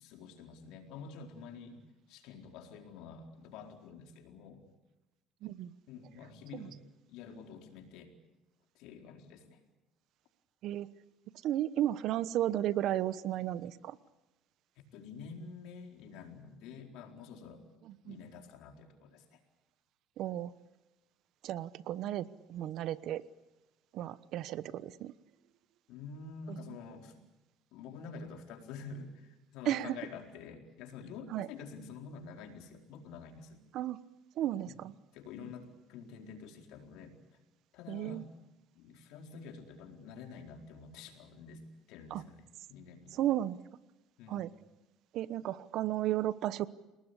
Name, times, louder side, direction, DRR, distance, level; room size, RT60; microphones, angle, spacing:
voice 1, 0.0-1.8 2.1-4.6 5.9-6.8 7.1-8.1 8.7-9.6 14.9-17.6 18.0-19.4 25.9-27.1 27.7-33.6 34.6-34.8 35.1-37.2 37.7-38.3 38.7-42.4 42.7-43.2 44.2-44.5, left 5 dB, 75° left, 3 dB, 4.3 m, -48 dB
voice 2, 5.4-5.7 6.5-6.7 10.6-10.9 11.4-14.0 17.9-18.2 20.2-20.5 21.4-23.2 23.9-25.1 26.5-26.8 29.6-30.0 31.3-31.5 33.7-34.0 34.4-34.9 37.9-38.2 42.1-42.2 43.1-43.6 44.3-44.5 45.1-46.7, right 12 dB, 65° right, 16 dB, 1.1 m, -34 dB
30.0 x 19.0 x 8.3 m, 1.0 s
cardioid pair, 110°, 0 cm